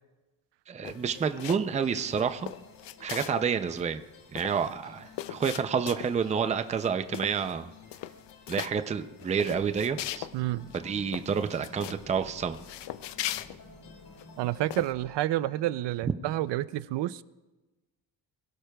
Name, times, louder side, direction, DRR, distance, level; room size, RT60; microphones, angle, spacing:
voice 1, 0.7-2.5 3.0-4.0 4.3-7.7 8.5-10.3 10.7-12.6, right 6 dB, 20° right, 10 dB, 0.4 m, -29 dB
sound 1, 0.8-1.8 2.1-3.5 3.8-3.9 4.1-6.3 6.7-6.9 7.1-7.6 7.9-8.7 9.2-10.4 10.7-10.8 11.1-12.0 12.5-14.2 14.7-14.9, left 14 dB, 90° left, 0.6 m, -39 dB
sound 2, 0.9-15.7, left 5 dB, 60° left, 3.9 m, -55 dB
sound 3, 9.5-15.1, left 1 dB, 30° left, 3.5 m, -51 dB
voice 2, 10.3-10.7 14.4-17.2, right 15 dB, 80° right, 17 dB, 0.5 m, -29 dB
22.5 x 16.5 x 2.3 m, 1.1 s
cardioid pair, 170°, 41 cm